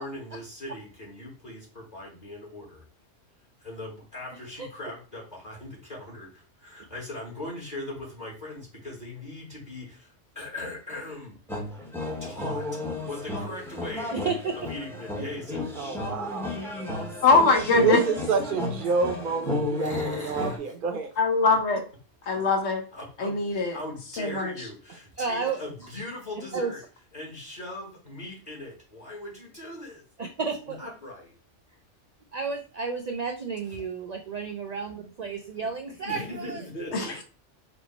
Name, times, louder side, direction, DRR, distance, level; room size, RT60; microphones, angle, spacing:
voice 1, 0.0-2.8 3.6-11.4 12.2-14.2 14.7-15.9 19.7-20.7 22.9-26.8 27.1-30.0 30.6-31.3 36.0-37.2, left 1 dB, 40° left, -5 dB, 1.2 m, -40 dB
sound 1, 11.5-20.6, left 2 dB, 5° left, 0.6 m, -33 dB
voice 2, 14.1-14.7 22.4-22.5 25.2-25.6 26.5-26.7 30.2-30.8 32.3-36.7 37.0-37.1, right 5 dB, 90° right, 5 dB, 0.3 m, -32 dB
voice 3, 15.8-16.5 17.8-21.1, right 5 dB, 50° right, 5 dB, 0.8 m, -28 dB
voice 4, 17.2-18.0 21.2-21.8 22.3-22.8 23.2-23.8 24.2-24.5 36.9-37.1, left 3 dB, 65° left, 2 dB, 1.1 m, -22 dB
4.5 x 2.1 x 4.1 m, 0.38 s
omnidirectional pair, 1.2 m